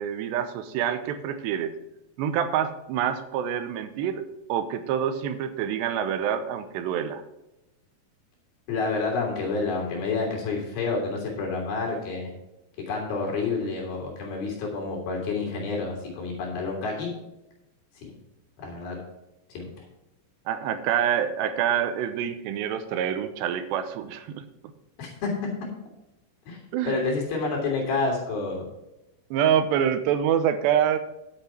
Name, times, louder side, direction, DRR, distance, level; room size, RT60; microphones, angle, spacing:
voice 1, 0.0-1.7 2.2-7.2 20.5-24.5 26.7-26.9 29.3-31.0, right 9 dB, 85° right, 10 dB, 3.0 m, -26 dB
voice 2, 8.7-12.3 12.9-17.1 17.9-18.1 18.6-19.0 19.5-19.9 25.0-25.3 26.5-26.6 26.8-28.6, left 3 dB, 65° left, -1 dB, 4.7 m, -29 dB
10.5 x 8.2 x 4.4 m, 0.93 s
omnidirectional pair, 4.8 m